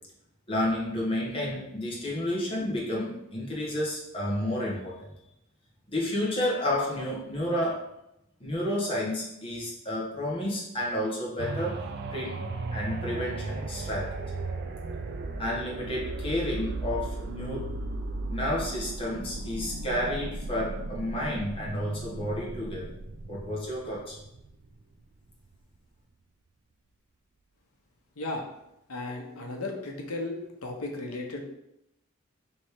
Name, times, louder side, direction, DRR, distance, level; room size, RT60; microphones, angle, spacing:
voice 1, 0.5-5.0 5.9-7.9 8.4-11.8 12.1-14.1 15.4-17.7 18.3-22.9 23.3-24.2, left 1 dB, 25° left, -5 dB, 1.2 m, -31 dB
sound 1, 11.4-25.0 25.5-25.6, right 2 dB, 50° right, 0.4 m, -36 dB
voice 2, 28.9-30.4 30.6-31.4, left 2 dB, 90° left, 1 dB, 0.9 m, -35 dB
3.4 x 3.2 x 4.5 m, 0.84 s
head